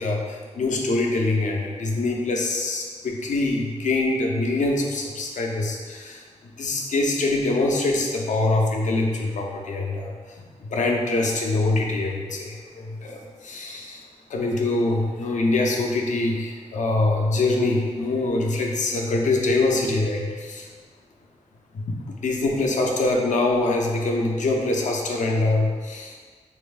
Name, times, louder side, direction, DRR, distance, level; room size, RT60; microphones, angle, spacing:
voice 1, 0.0-6.2 6.6-14.0 14.3-20.7 21.7-26.2, left 2 dB, 70° left, 0 dB, 0.5 m, -24 dB
4.2 x 2.7 x 2.4 m, 1.5 s
wide cardioid pair, 85°, 13 cm